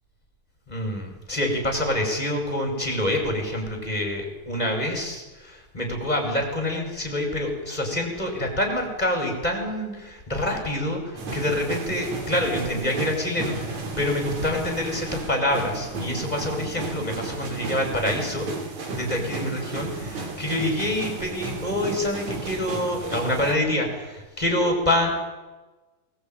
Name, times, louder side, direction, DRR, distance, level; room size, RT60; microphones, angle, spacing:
voice 1, 0.7-18.5 18.9-25.1, left 1 dB, 10° left, 2 dB, 5.2 m, -26 dB
sound 1, 11.2-23.5, right 3 dB, 50° right, 4.1 m, -33 dB
20.5 x 20.0 x 9.1 m, 1.2 s
omnidirectional pair, 4.2 m